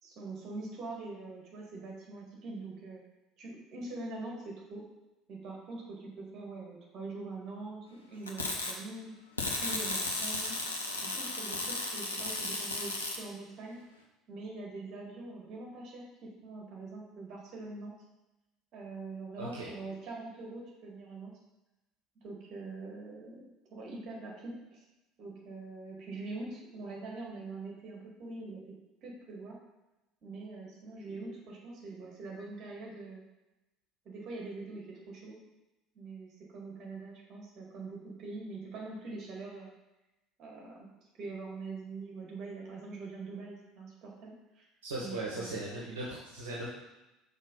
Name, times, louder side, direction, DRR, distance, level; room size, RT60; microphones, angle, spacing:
voice 1, 0.0-3.0 3.4-4.8 5.3-9.1 9.6-10.6 11.0-13.8 14.3-17.9 18.7-21.3 22.2-24.8 25.2-28.7 29.0-29.6 30.2-33.2 34.0-35.4 35.9-39.7 40.4-40.9 41.2-44.7 45.0-45.6, right 3 dB, 40° right, -2 dB, 2.2 m, -43 dB
sound 1, 8.3-8.7 9.4-13.2, left 2 dB, 80° left, 0.8 m, -34 dB
voice 2, 19.4-19.7 44.8-46.7, right 2 dB, 70° right, -5 dB, 1.2 m, -38 dB
5.5 x 4.1 x 5.5 m, 0.98 s
figure-of-eight pair, 65°, 0 cm